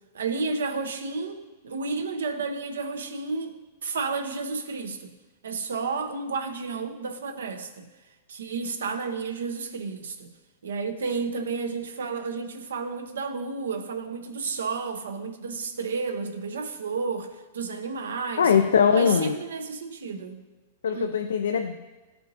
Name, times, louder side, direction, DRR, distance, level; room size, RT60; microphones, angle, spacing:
voice 1, 0.1-3.5 3.8-5.1 5.4-7.9 8.3-10.3 10.6-18.5 18.9-20.4 20.9-21.1, right 4 dB, 85° right, 6 dB, 0.7 m, -31 dB
voice 2, 18.4-19.3 20.8-21.8, left 7 dB, 85° left, 7 dB, 0.4 m, -21 dB
12.0 x 4.4 x 2.7 m, 1.2 s
hypercardioid pair, 130°, 0 cm